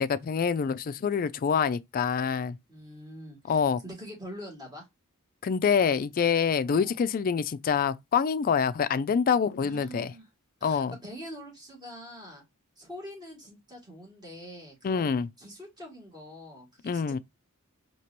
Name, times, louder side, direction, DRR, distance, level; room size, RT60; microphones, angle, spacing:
voice 1, 0.0-2.6 3.5-3.8 5.4-10.1 10.6-10.9 14.8-15.3 16.8-17.2, left 6 dB, 40° left, 0.3 m, -26 dB
voice 2, 2.7-4.9 6.6-7.0 9.6-10.3 10.6-12.4 12.8-15.1 15.4-17.2, equal, 20° right, 2.4 m, -44 dB
4.5 x 2.9 x 2.8 m
head